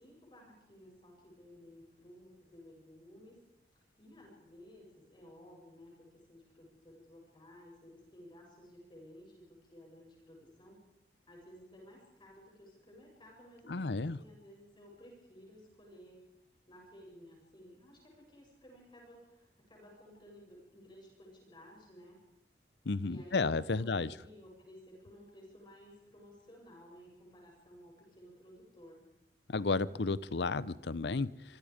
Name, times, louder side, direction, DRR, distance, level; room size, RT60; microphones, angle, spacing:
voice 1, 0.0-3.4 3.7-10.8 11.3-16.2 16.7-22.2 23.0-29.1, equal, 25° left, 8.0 m, -56 dB
voice 2, 13.7-14.2 22.9-24.1 29.5-31.6, left 3 dB, 70° left, 0.7 m, -32 dB
26.0 x 24.5 x 5.2 m
head